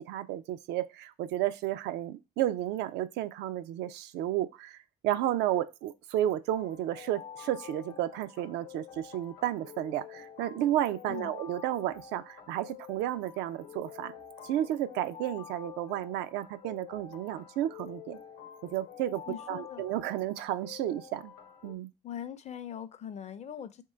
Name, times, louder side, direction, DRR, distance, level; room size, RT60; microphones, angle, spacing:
voice 1, 0.0-4.8 5.0-14.1 14.4-18.2 18.7-21.3 21.6-21.9, right 13 dB, 85° right, 0.4 m, -32 dB
sound 1, 6.5-21.7, left 8 dB, 80° left, 0.8 m, -48 dB
voice 2, 11.1-11.4 19.3-19.9 22.0-23.8, left 9 dB, 40° left, 0.4 m, -41 dB
3.7 x 3.0 x 4.2 m
cardioid pair, 110°, 17 cm